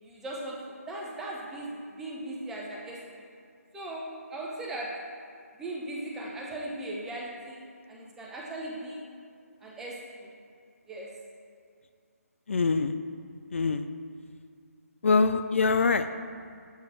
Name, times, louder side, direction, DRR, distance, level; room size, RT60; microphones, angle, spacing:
voice 1, 0.0-3.2 3.7-5.1 5.6-7.6 7.9-9.0 9.6-10.3 10.9-11.2, right 1 dB, 5° right, -3 dB, 0.7 m, -38 dB
voice 2, 12.5-12.9 13.5-13.8 15.0-16.1, left 4 dB, 55° left, 10 dB, 0.4 m, -24 dB
7.9 x 5.0 x 6.2 m, 2.3 s
figure-of-eight pair, 150°, 8 cm